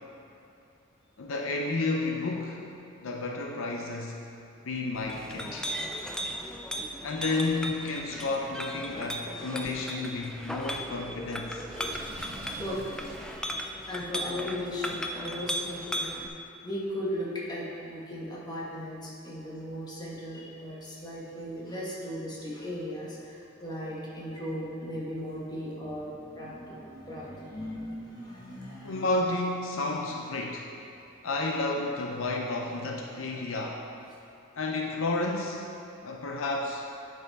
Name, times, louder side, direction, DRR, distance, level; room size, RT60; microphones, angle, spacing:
voice 1, 1.2-2.6 3.0-4.2 4.6-5.7 7.0-11.7 28.8-30.7 31.2-33.8 34.6-35.6 36.0-36.8, left 2 dB, 70° left, 1 dB, 0.6 m, -31 dB
Chink clink, 4.9-16.3, equal, 5° left, 0.3 m, -36 dB
Water / Sink (filling or washing), 11.7-13.5, right 1 dB, 70° right, 1.1 m, -44 dB
voice 2, 12.6-13.0 13.4-16.3 16.6-29.1, left 1 dB, 20° left, -6 dB, 1.3 m, -37 dB
9.0 x 5.6 x 4.0 m, 2.7 s
head